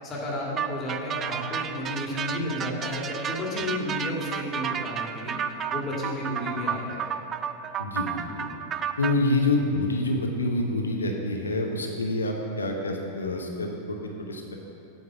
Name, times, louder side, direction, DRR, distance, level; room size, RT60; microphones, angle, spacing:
voice 1, 0.0-5.4 5.7-7.0, left 1 dB, 25° left, -3 dB, 2.0 m, -32 dB
sound 1, 0.6-9.1, right 8 dB, 25° right, 0.4 m, -32 dB
voice 2, 7.8-8.4 9.0-14.0 14.3-14.6, left 2 dB, 75° left, 2 dB, 0.9 m, -27 dB
8.1 x 5.2 x 6.0 m, 2.8 s
figure-of-eight pair, 90°, 0 cm